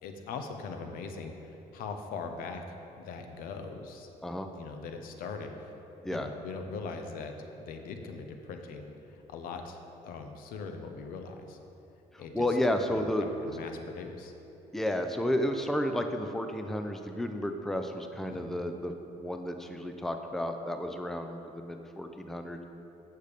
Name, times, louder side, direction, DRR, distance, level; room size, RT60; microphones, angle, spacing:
voice 1, 0.0-2.6 3.0-4.1 4.5-5.7 6.1-8.9 9.3-11.6 12.2-12.5 12.9-14.3 18.3-18.6, left 4 dB, 75° left, 5 dB, 0.8 m, -41 dB
voice 2, 12.1-13.2 14.7-18.9 19.2-22.6, left 1 dB, ahead, 5 dB, 0.5 m, -32 dB
8.6 x 6.7 x 5.2 m, 3.0 s
cardioid pair, 105°, 15 cm